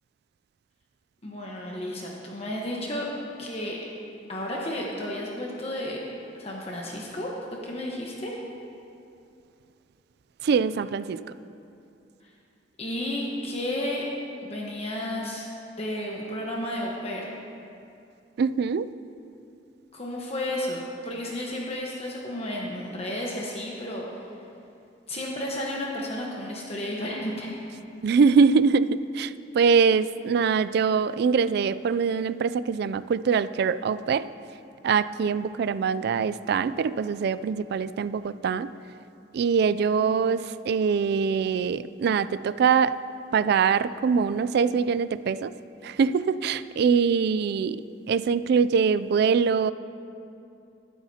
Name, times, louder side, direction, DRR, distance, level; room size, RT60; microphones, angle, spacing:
voice 1, 1.2-3.1 3.4-3.8 4.3-6.0 6.4-7.3 7.6-8.4 12.2-12.3 12.8-14.1 14.4-15.5 15.8-17.3 19.9-24.2 25.1-27.5, left 1 dB, 35° left, -2 dB, 1.2 m, -32 dB
voice 2, 10.4-11.2 18.4-18.9 28.0-34.3 34.8-38.7 39.3-43.0 43.3-45.5 45.8-49.7, right 5 dB, 60° right, 15 dB, 0.3 m, -23 dB
15.5 x 12.0 x 2.8 m, 2.6 s
head